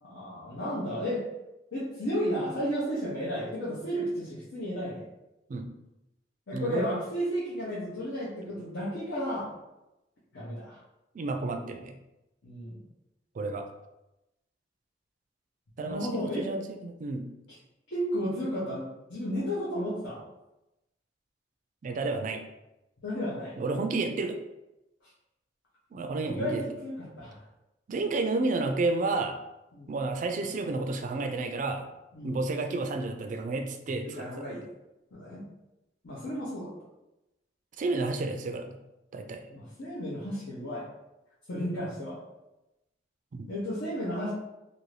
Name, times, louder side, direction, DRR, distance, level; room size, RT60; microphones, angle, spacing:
voice 1, 0.0-1.2 1.7-5.0 6.5-9.5 10.3-10.8 12.4-12.8 15.8-16.4 17.9-20.2 23.0-23.5 26.2-27.4 29.7-29.9 32.1-32.4 34.0-34.6 35.1-35.4 36.0-36.7 39.5-40.9 41.5-42.2 43.5-44.3, equal, 80° left, -7 dB, 0.8 m, -33 dB
voice 2, 6.5-7.0 11.1-12.0 13.3-13.6 15.8-17.2 21.8-22.4 23.6-24.4 25.9-26.6 27.9-29.4 29.9-31.9 32.2-34.5 37.8-38.8 39.1-39.4 43.3-43.5, right 3 dB, 45° right, 5 dB, 0.3 m, -31 dB
2.6 x 2.6 x 3.2 m, 0.94 s
head